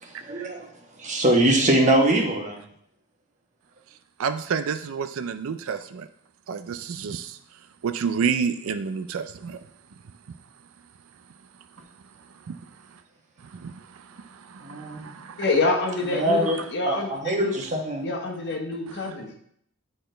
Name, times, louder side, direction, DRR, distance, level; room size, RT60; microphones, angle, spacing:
voice 1, 0.0-0.7 1.0-2.6 14.6-15.1 16.1-16.6 16.8-18.1, right 1 dB, 35° right, 1 dB, 1.2 m, -23 dB
voice 2, 4.2-6.1 6.5-7.4 7.8-9.6 12.4-12.6 12.9-13.0 13.5-15.4 16.5-16.6, right 6 dB, 65° right, 10 dB, 0.4 m, -30 dB
voice 3, 15.4-17.6 18.0-19.4, left 3 dB, 50° left, 2 dB, 1.2 m, -27 dB
9.6 x 4.4 x 3.3 m, 0.69 s
head